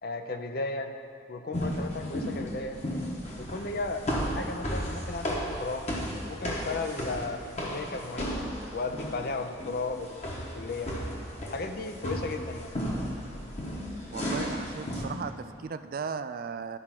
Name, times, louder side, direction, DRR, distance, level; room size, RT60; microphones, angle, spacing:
voice 1, 0.0-0.9 1.3-2.8 3.4-5.9 6.3-10.9 11.5-12.7 14.4-14.6, left 3 dB, 55° left, 6 dB, 0.6 m, -35 dB
sound 1, 1.5-15.0, equal, 35° left, 1.2 m, -34 dB
voice 2, 14.1-16.8, right 5 dB, 50° right, 10 dB, 0.3 m, -36 dB
12.0 x 4.8 x 5.9 m, 2.3 s
head